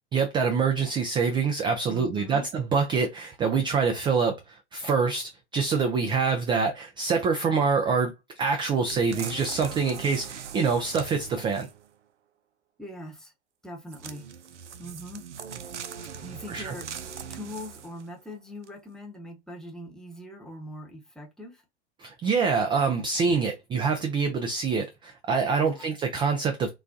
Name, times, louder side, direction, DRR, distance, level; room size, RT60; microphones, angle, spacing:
voice 1, 0.1-11.7 16.5-16.7 22.0-26.7, right 5 dB, 15° right, 0.3 m, -25 dB
voice 2, 1.9-2.5 12.8-13.3 13.6-14.2 14.8-15.2 16.2-16.9 17.3-21.6 25.6-25.9, equal, ahead, 0.9 m, -41 dB
sound 1, 8.9-11.9 13.9-18.1 18.6-18.7, right 7 dB, 90° right, 0.5 m, -40 dB
3.8 x 2.2 x 2.5 m
hypercardioid pair, 95°, 34 cm